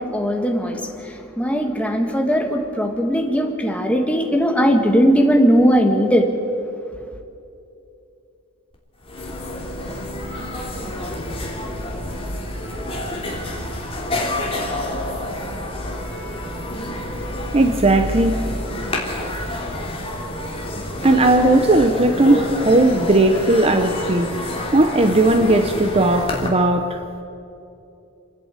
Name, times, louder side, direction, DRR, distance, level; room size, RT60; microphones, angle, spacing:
voice 1, 0.0-6.3, equal, 5° left, 3 dB, 1.7 m, -18 dB
sound 1, 8.7-8.8 9.0-26.5, left 1 dB, 25° left, 3.1 m, -28 dB
voice 2, 17.5-18.9 20.8-27.0, right 2 dB, 30° right, 6 dB, 0.8 m, -17 dB
27.5 x 10.5 x 9.0 m, 2.6 s
head